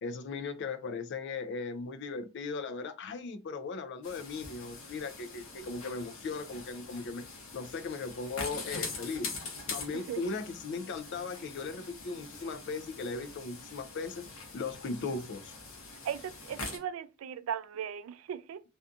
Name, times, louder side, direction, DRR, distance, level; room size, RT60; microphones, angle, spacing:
voice 1, 0.0-7.3 7.5-9.3 9.7-14.3 14.5-15.5, left 4 dB, 55° left, 0.4 m, -38 dB
sound 1, 4.0-16.8, left 3 dB, 85° left, 0.8 m, -43 dB
voice 2, 16.0-18.6, right 9 dB, 80° right, 0.3 m, -37 dB
2.5 x 2.3 x 2.5 m
head